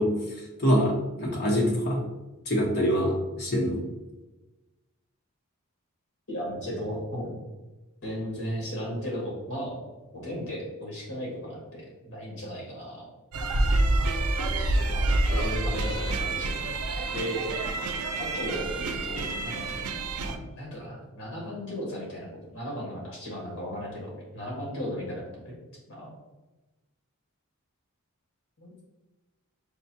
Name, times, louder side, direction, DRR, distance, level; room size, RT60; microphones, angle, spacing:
voice 1, 0.0-2.0 2.5-3.8, equal, 45° left, -2 dB, 1.0 m, -25 dB
voice 2, 6.3-7.4 8.0-9.8 10.1-13.1 14.9-15.1 15.3-16.7 17.1-17.5 18.2-19.9 20.2-25.5 25.9-26.1 28.6-28.7, equal, 75° left, -3 dB, 1.4 m, -35 dB
sound 1, 13.3-20.4, right 2 dB, 85° right, 0.5 m, -27 dB
6.6 x 2.3 x 2.7 m, 1.1 s
head